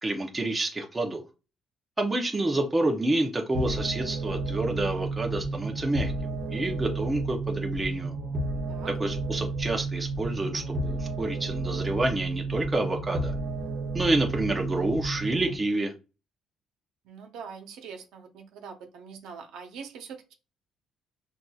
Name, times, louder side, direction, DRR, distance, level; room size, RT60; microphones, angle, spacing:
voice 1, 0.0-1.2 2.0-8.1 9.0-13.3 13.9-15.9, right 2 dB, 15° right, 0.8 m, -28 dB
sound 1, 3.5-15.5, right 3 dB, 50° right, 1.0 m, -32 dB
voice 2, 17.0-20.3, right 6 dB, 85° right, 0.9 m, -43 dB
5.9 x 2.6 x 2.4 m
cardioid pair, 130°, 0 cm